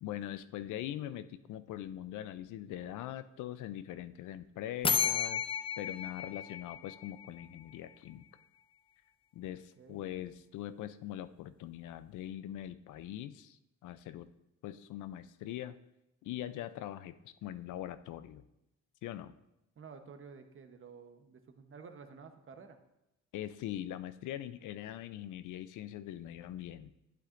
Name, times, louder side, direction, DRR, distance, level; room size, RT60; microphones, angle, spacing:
voice 1, 0.0-5.4 5.8-8.2 9.3-14.3 14.6-15.8 16.2-18.4 19.0-19.3 23.3-27.0, left 12 dB, 80° left, 13 dB, 0.5 m, -42 dB
sound 1, 4.8-7.6, left 7 dB, 20° left, 0.4 m, -33 dB
voice 2, 9.4-10.3 19.8-22.8, right 5 dB, 45° right, 7 dB, 1.0 m, -52 dB
11.5 x 8.4 x 2.6 m, 0.89 s
cardioid pair, 90°, 30 cm